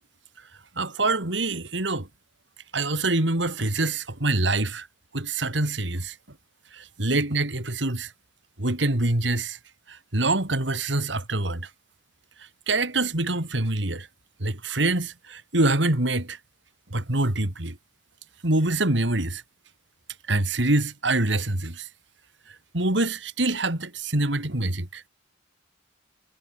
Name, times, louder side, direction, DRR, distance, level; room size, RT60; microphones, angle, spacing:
voice 1, 0.7-2.1 2.7-4.9 5.1-6.2 6.7-8.1 8.6-9.6 9.9-11.7 12.7-14.1 14.4-16.4 16.9-17.8 18.4-19.4 20.3-21.9 22.5-25.0, right 2 dB, 65° right, 3.2 m, -25 dB
head